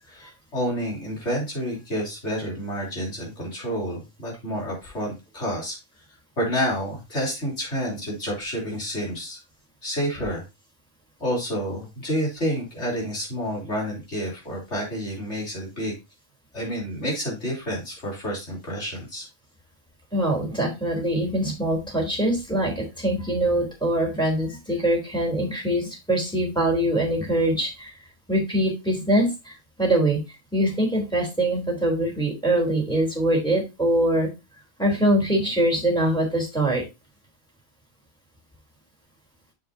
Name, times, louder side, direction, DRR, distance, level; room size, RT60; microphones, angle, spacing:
voice 1, 0.1-5.8 6.4-9.4 9.8-10.4 11.2-15.9 16.5-19.2, equal, 55° left, -3 dB, 3.9 m, -29 dB
voice 2, 20.1-27.9 28.3-29.5 29.8-30.2 30.5-34.3 34.8-36.8, right 1 dB, 5° left, -1 dB, 3.5 m, -23 dB
7.4 x 7.3 x 2.8 m, 0.25 s
omnidirectional pair, 1.4 m